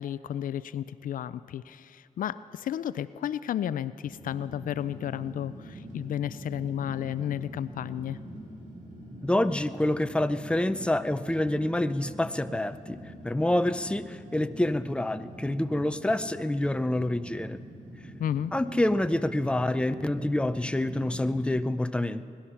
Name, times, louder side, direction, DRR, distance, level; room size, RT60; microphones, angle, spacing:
voice 1, 0.0-8.2 18.2-18.5, left 10 dB, 80° left, 16 dB, 0.4 m, -32 dB
Fire, 4.0-21.5, right 1 dB, 65° right, 4.6 m, -44 dB
voice 2, 9.2-13.0 13.2-17.6 18.5-22.2, left 1 dB, 5° left, 11 dB, 0.6 m, -27 dB
21.0 x 11.5 x 5.8 m, 2.3 s
cardioid pair, 65°, 14 cm